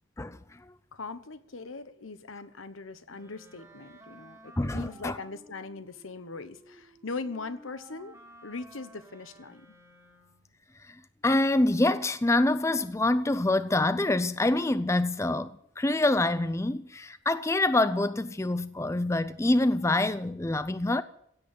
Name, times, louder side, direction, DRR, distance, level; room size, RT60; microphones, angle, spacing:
voice 1, 0.9-8.2 8.4-9.7, left 3 dB, 85° left, 1.1 m, -40 dB
Wind instrument woodwind instrument, 3.1-10.5, right 1 dB, 15° right, 2.1 m, -54 dB
voice 2, 4.6-5.2 10.9-11.0 11.2-21.0, left 2 dB, 15° left, 0.5 m, -26 dB
16.5 x 8.3 x 8.6 m
head